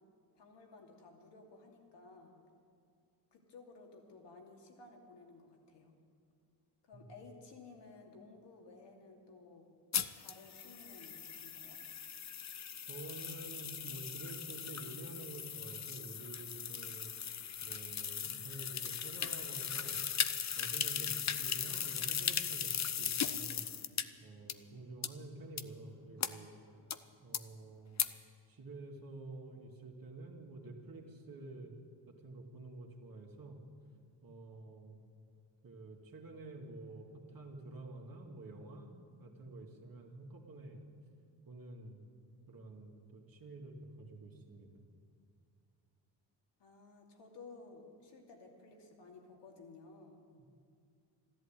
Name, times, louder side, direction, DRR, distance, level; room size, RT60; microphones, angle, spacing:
voice 1, 0.4-2.3 3.3-5.9 6.8-9.7 10.2-11.8 46.6-50.2, left 3 dB, 65° left, 1 dB, 2.7 m, -56 dB
sound 1, 9.9-24.0 24.5-24.6 25.0-25.1 25.6-25.7 26.2-26.3 26.9-27.0 27.3-27.4 28.0-28.1, left 8 dB, 35° left, 0.8 m, -38 dB
voice 2, 12.9-17.1 17.6-20.0 20.6-23.7 24.2-26.5 27.2-28.0 28.5-31.7 32.1-33.6 34.2-35.0 35.6-38.9 39.2-40.8 41.5-42.0 42.5-44.7, right 2 dB, 50° right, 1 dB, 2.5 m, -49 dB
13.0 x 11.5 x 9.0 m, 2.3 s
supercardioid pair, 60°, 45 cm